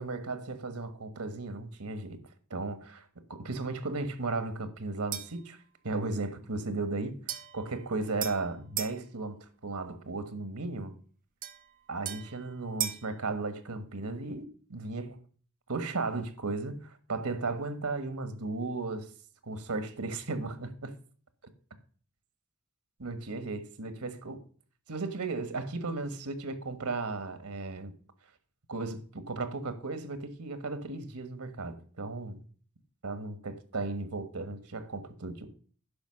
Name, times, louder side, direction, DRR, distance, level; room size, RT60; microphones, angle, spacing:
voice 1, 0.0-2.2 2.5-5.6 5.8-10.9 11.9-15.2 15.7-19.1 19.4-20.9 23.0-24.4 24.9-27.9 28.7-32.4 33.0-35.5, right 3 dB, 90° right, 1.4 m, -35 dB
sound 1, 5.1-5.5 7.3-9.0 11.4-13.1, right 11 dB, 40° right, 0.7 m, -38 dB
10.5 x 5.5 x 6.4 m
head